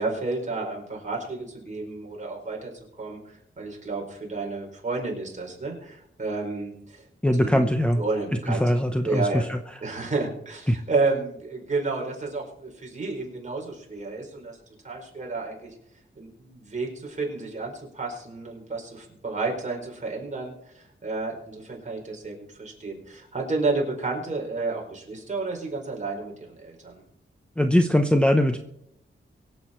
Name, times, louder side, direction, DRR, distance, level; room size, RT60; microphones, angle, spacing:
voice 1, 0.0-2.7 3.0-7.1 7.3-7.6 7.9-9.5 9.8-14.6 14.8-15.7 16.2-27.0, right 3 dB, 35° right, -1 dB, 4.8 m, -31 dB
voice 2, 7.2-8.0 8.5-9.6 10.7-10.8 27.6-28.6, equal, 5° left, 6 dB, 0.8 m, -21 dB
24.0 x 8.0 x 4.5 m, 0.76 s
wide cardioid pair, 170°, 21 cm